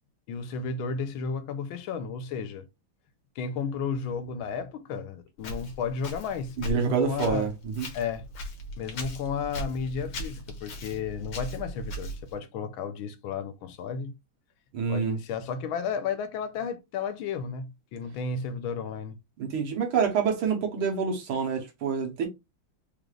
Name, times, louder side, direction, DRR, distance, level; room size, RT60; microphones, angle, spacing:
voice 1, 0.3-2.7 3.4-7.5 7.9-8.3 8.8-14.1 14.9-19.2, left 5 dB, 85° left, 1.5 m, -33 dB
Walk footsteps, 5.4-12.4, left 1 dB, 65° left, 1.8 m, -39 dB
voice 2, 6.6-7.9 14.7-15.2 19.4-22.3, right 6 dB, 90° right, 1.9 m, -27 dB
5.1 x 2.4 x 3.1 m
omnidirectional pair, 2.2 m